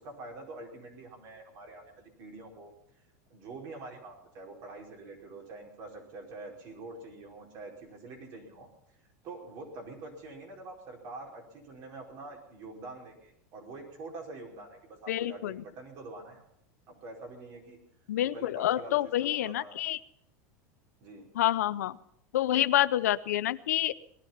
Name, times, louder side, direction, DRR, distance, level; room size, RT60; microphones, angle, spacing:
voice 1, 0.0-2.7 3.3-8.7 9.2-16.4 16.9-17.8 18.2-19.8 21.0-21.3, right 2 dB, 55° right, 0 dB, 4.9 m, -45 dB
voice 2, 15.1-15.5 18.1-20.0 21.4-21.9 22.3-23.9, left 13 dB, 85° left, 16 dB, 0.6 m, -27 dB
19.5 x 11.5 x 5.8 m, 0.73 s
supercardioid pair, 110°, 8 cm